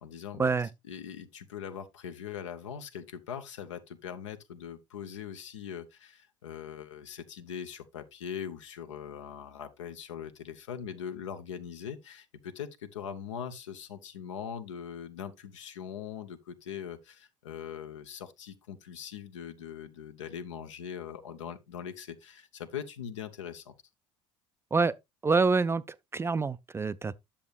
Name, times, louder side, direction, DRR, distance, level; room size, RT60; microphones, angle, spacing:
voice 1, 0.0-0.5 0.8-23.7, left 8 dB, 75° left, 0.7 m, -41 dB
voice 2, 25.2-25.8 26.1-27.1, right 4 dB, 15° right, 0.3 m, -26 dB
9.9 x 7.0 x 2.3 m
figure-of-eight pair, 60°, 16 cm